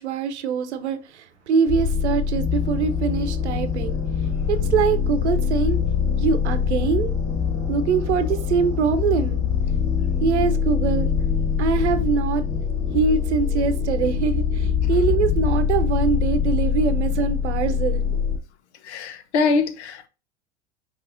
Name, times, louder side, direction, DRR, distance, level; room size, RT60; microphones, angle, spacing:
voice 1, 0.0-4.0 4.5-5.8 6.2-7.1 7.7-9.4 10.2-11.1 11.6-12.4 12.9-18.0, right 6 dB, 85° right, 0.8 m, -23 dB
sound 1, 1.7-18.4, left 7 dB, 60° left, 1.2 m, -23 dB
voice 2, 18.9-20.1, left 4 dB, 85° left, 0.7 m, -23 dB
5.5 x 3.2 x 2.6 m
hypercardioid pair, 90°, 33 cm